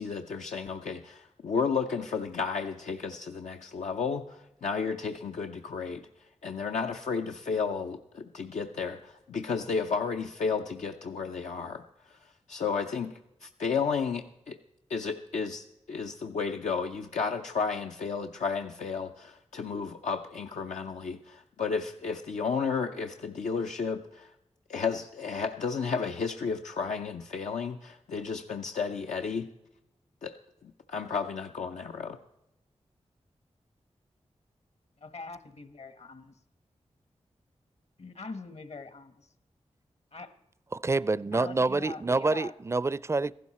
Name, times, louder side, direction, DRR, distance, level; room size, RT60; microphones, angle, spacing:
voice 1, 0.0-14.6 14.9-24.3 24.7-29.5 30.2-30.4 30.6-32.2, left 5 dB, 85° left, 0.6 m, -33 dB
voice 2, 35.0-36.3 38.0-39.3 40.1-40.3 41.3-42.5, left 3 dB, 65° left, 1.3 m, -43 dB
voice 3, 40.8-43.3, right 3 dB, 25° right, 0.4 m, -27 dB
15.0 x 12.0 x 4.2 m
cardioid pair, 45°, 12 cm